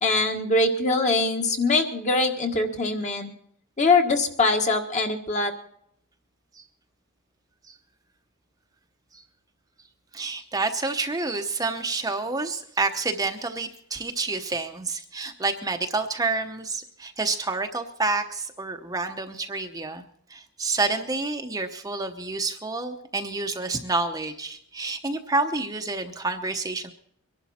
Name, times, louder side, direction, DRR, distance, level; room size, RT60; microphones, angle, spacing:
voice 1, 0.0-3.3 3.8-5.5, left 3 dB, 35° left, 4 dB, 1.6 m, -23 dB
voice 2, 10.1-20.0 20.3-26.9, right 3 dB, 15° right, 5 dB, 0.8 m, -29 dB
23.0 x 11.5 x 4.3 m, 0.69 s
head